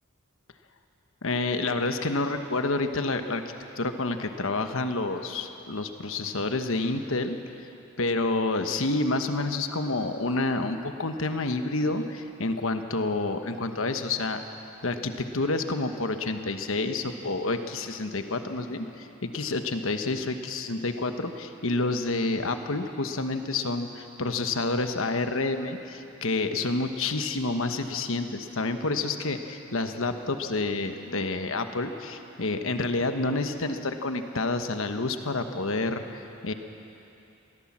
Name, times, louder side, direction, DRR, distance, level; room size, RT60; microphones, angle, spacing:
voice 1, 1.2-7.4 8.0-14.4 14.8-36.5, left 2 dB, 70° left, 7 dB, 1.2 m, -29 dB
22.5 x 16.0 x 7.4 m, 2.9 s
head